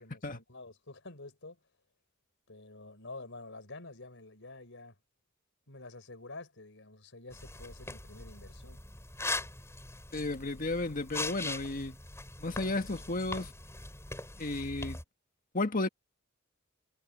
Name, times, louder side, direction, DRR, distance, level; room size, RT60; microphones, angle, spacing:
voice 1, 0.0-1.6 2.5-4.9 5.7-8.8, left 2 dB, 65° left, 5.8 m, -48 dB
sound 1, 7.3-15.0, left 2 dB, 15° left, 7.7 m, -41 dB
voice 2, 10.1-11.9 12.4-13.5 14.4-15.0 15.5-15.9, left 2 dB, 45° left, 1.7 m, -33 dB
head